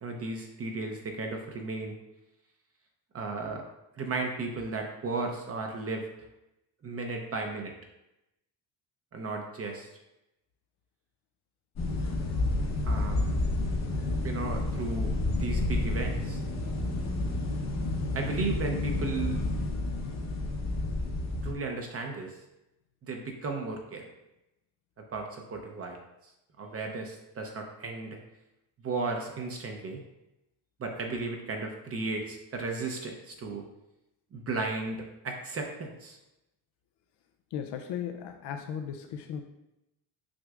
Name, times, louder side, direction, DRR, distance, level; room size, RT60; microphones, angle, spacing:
voice 1, 0.0-1.9 3.1-3.6 4.0-6.1 6.8-7.7 9.1-9.9 12.9-13.4 14.2-16.4 18.1-19.4 21.4-22.4 23.0-24.1 25.0-26.0 26.6-28.2 28.8-30.0 30.8-33.6 34.3-36.2, right 3 dB, 35° right, 2 dB, 0.7 m, -35 dB
sound 1, 11.8-21.5, left 2 dB, 40° left, 0.9 m, -30 dB
voice 2, 37.5-39.4, left 8 dB, 80° left, 5 dB, 0.6 m, -36 dB
6.4 x 6.2 x 2.4 m, 0.91 s
cardioid pair, 170°, 41 cm